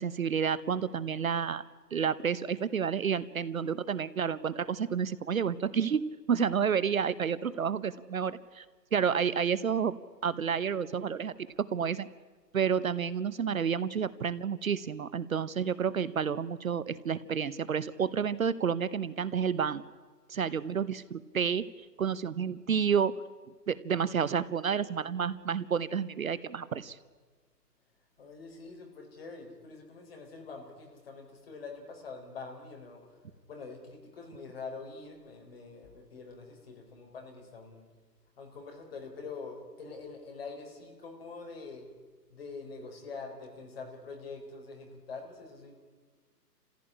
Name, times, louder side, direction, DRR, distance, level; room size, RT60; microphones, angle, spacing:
voice 1, 0.0-1.6 1.9-8.6 8.9-9.9 10.2-12.1 12.5-19.8 20.3-21.7 22.0-23.2 23.7-27.0, right 7 dB, 55° right, 17 dB, 0.9 m, -30 dB
voice 2, 28.2-33.2 33.5-37.9 38.4-41.9 42.3-45.7, left 4 dB, 35° left, 2 dB, 4.4 m, -45 dB
29.5 x 15.5 x 9.9 m, 1.4 s
hypercardioid pair, 170°, 49 cm